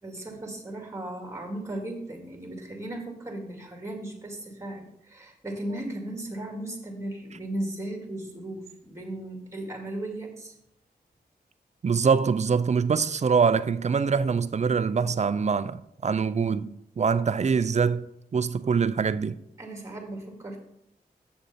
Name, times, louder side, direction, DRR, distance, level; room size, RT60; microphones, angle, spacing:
voice 1, 0.0-10.5 19.6-20.6, right 1 dB, 15° right, 2.2 m, -36 dB
voice 2, 11.8-18.1 18.3-19.4, right 5 dB, 45° right, 0.5 m, -24 dB
7.9 x 6.7 x 4.2 m
wide cardioid pair, 80°, 17 cm